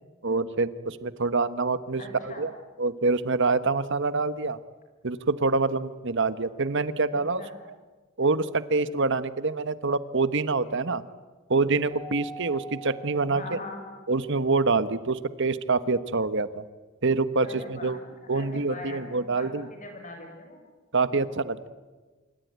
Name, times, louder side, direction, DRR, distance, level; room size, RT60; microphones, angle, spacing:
voice 1, 0.2-2.5 2.8-4.6 5.0-7.4 8.2-11.0 11.5-13.6 14.1-16.6 17.0-18.0 18.3-19.7 20.9-21.7, right 3 dB, 55° right, 14 dB, 1.2 m, -26 dB
voice 2, 2.0-2.4 7.1-7.5 13.2-13.8 17.4-20.6, left 2 dB, 35° left, 4 dB, 6.9 m, -42 dB
Keyboard (musical), 11.9-14.2, right 4 dB, 35° right, 6.3 m, -44 dB
26.5 x 24.0 x 9.5 m, 1.3 s
head